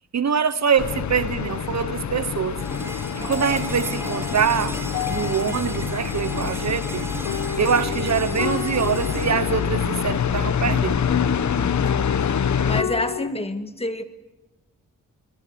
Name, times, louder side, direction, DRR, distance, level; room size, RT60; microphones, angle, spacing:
voice 1, 0.1-2.6 3.2-4.8 5.1-7.1 7.6-11.1, right 7 dB, 55° right, 1.2 m, -24 dB
sound 1, 0.8-12.8, left 7 dB, 60° left, 1.1 m, -26 dB
sound 2, 2.6-10.6, right 1 dB, 5° right, 5.4 m, -35 dB
sound 3, 3.2-13.3, left 9 dB, 75° left, 1.0 m, -33 dB
voice 2, 11.6-14.0, left 1 dB, 20° left, 2.0 m, -29 dB
28.0 x 22.5 x 7.1 m
cardioid pair, 75°, 33 cm